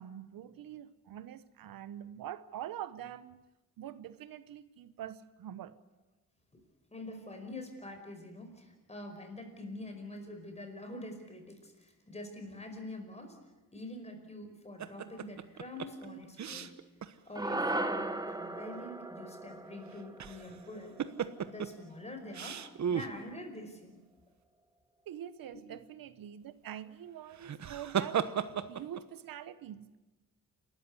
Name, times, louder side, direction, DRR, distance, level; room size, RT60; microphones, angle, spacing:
voice 1, 0.0-3.4 3.8-5.7 16.0-16.2 25.1-28.2 28.7-30.0, right 11 dB, 90° right, 14 dB, 1.1 m, -45 dB
voice 2, 6.9-13.4 13.7-16.7 17.3-21.0 21.5-24.0 25.5-25.6, left 1 dB, 20° left, 5 dB, 5.1 m, -45 dB
sound 1, 14.8-17.1 17.5-17.6 19.9-20.6 21.0-21.7 22.3-23.1 27.3-29.0, right 8 dB, 55° right, 1.2 m, -35 dB
sound 2, 17.4-21.8, right 2 dB, 10° right, 1.3 m, -37 dB
29.0 x 13.5 x 9.8 m, 1.1 s
cardioid pair, 115°, 33 cm